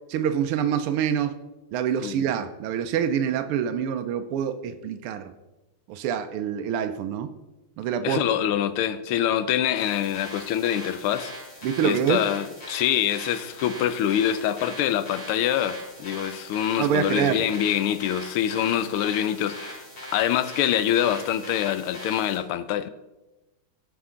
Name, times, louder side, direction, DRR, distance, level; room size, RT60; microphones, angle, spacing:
voice 1, 0.1-1.4 1.7-5.3 5.9-7.3 7.8-8.2 11.6-12.2 16.8-17.4, right 8 dB, 85° right, 8 dB, 1.6 m, -26 dB
voice 2, 8.0-11.3 11.8-19.9 20.1-22.9, left 10 dB, 85° left, 12 dB, 1.5 m, -25 dB
sound 1, 9.7-22.4, equal, 45° left, 3.3 m, -41 dB
18.0 x 6.0 x 3.8 m, 1.0 s
omnidirectional pair, 2.4 m